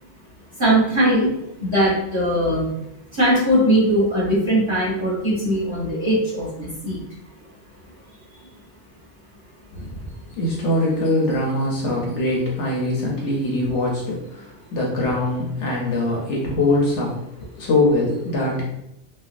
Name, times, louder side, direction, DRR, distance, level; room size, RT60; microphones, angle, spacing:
voice 1, 0.6-1.3 1.6-2.7 3.2-7.0, equal, 25° right, -7 dB, 0.9 m, -20 dB
voice 2, 9.7-17.1 17.6-18.6, left 2 dB, 65° left, -3 dB, 0.9 m, -22 dB
3.2 x 2.1 x 2.4 m, 0.81 s
omnidirectional pair, 1.4 m